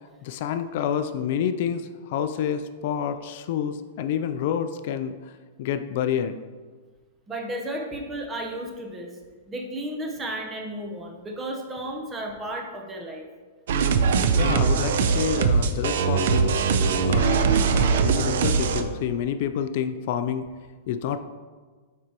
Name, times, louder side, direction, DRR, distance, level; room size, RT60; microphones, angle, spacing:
voice 1, 0.2-5.3 5.6-6.4 14.3-20.5 20.9-21.2, left 8 dB, 55° left, 11 dB, 0.3 m, -28 dB
voice 2, 7.3-9.1 9.5-13.2, right 1 dB, 15° right, 2 dB, 0.8 m, -33 dB
sound 1, 13.7-18.8, right 5 dB, 70° right, 0.5 m, -21 dB
7.6 x 5.1 x 2.9 m, 1.4 s
supercardioid pair, 155°, 0 cm